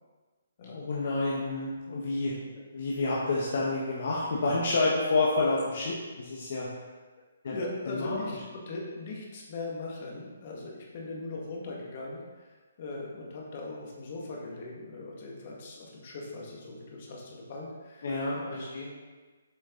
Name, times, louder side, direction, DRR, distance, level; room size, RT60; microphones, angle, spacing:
voice 1, 0.7-2.3 2.7-6.7 7.4-7.5 7.9-8.2 18.0-18.9, left 3 dB, 60° left, -5 dB, 1.3 m, -29 dB
voice 2, 7.5-12.5 12.8-18.6, left 2 dB, 45° left, -2 dB, 1.9 m, -40 dB
8.0 x 5.4 x 3.9 m, 1.3 s
hypercardioid pair, 150°, 0 cm